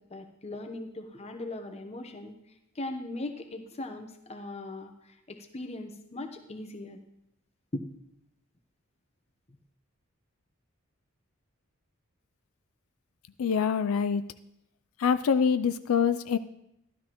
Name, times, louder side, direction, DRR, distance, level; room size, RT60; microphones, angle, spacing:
voice 1, 0.0-2.3 2.7-7.0 7.7-7.8, left 2 dB, 30° left, 6 dB, 0.9 m, -39 dB
voice 2, 13.4-14.2 15.0-16.4, left 6 dB, 85° left, 11 dB, 0.4 m, -25 dB
12.5 x 12.5 x 3.0 m, 0.82 s
head